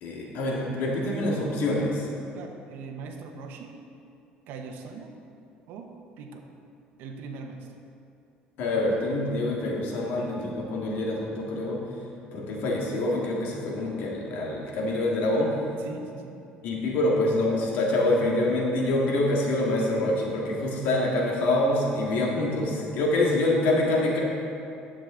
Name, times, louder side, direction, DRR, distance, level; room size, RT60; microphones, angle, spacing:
voice 1, 0.0-2.1 8.6-11.8 12.3-15.5 16.6-24.2, left 1 dB, 70° left, -2 dB, 2.0 m, -26 dB
voice 2, 2.3-3.7 4.5-5.1 5.7-6.5 7.0-7.7 15.8-16.4, right 4 dB, 70° right, 4 dB, 1.0 m, -41 dB
10.5 x 7.7 x 3.8 m, 2.6 s
cardioid pair, 145°, 3 cm